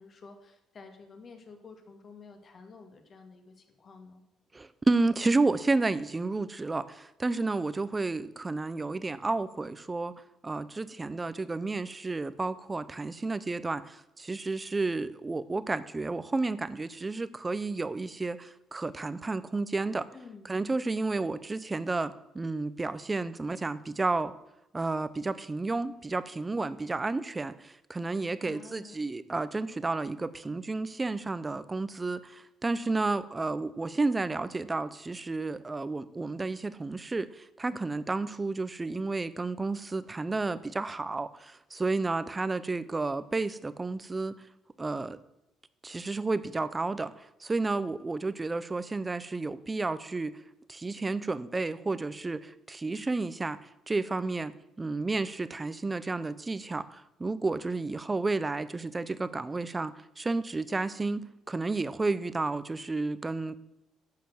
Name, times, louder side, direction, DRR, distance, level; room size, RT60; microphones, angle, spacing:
voice 1, 0.0-4.2 20.1-20.5 28.4-29.1, left 4 dB, 35° left, 5 dB, 1.7 m, -50 dB
voice 2, 4.5-10.2 10.4-20.1 20.4-24.3 24.7-44.3 44.8-45.2 45.8-50.4 50.7-63.6, right 3 dB, 15° right, 15 dB, 0.5 m, -31 dB
11.0 x 6.8 x 7.7 m, 0.86 s
cardioid pair, 160°, 0 cm